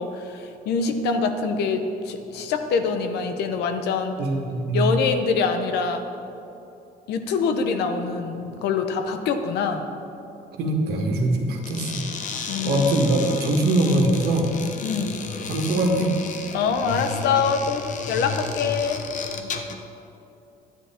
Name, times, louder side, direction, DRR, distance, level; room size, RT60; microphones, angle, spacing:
voice 1, 0.0-4.2 4.7-6.0 7.1-9.8 12.5-13.1 14.8-15.2 16.5-19.0, left 5 dB, 80° left, 7 dB, 0.9 m, -25 dB
voice 2, 4.2-4.9 10.6-12.0 12.6-14.5 15.5-16.1, right 1 dB, 70° right, 0 dB, 1.9 m, -22 dB
sound 1, 11.6-19.9, left 5 dB, 45° left, 0.8 m, -33 dB
11.0 x 9.8 x 4.4 m, 2.8 s
cardioid pair, 110°, 17 cm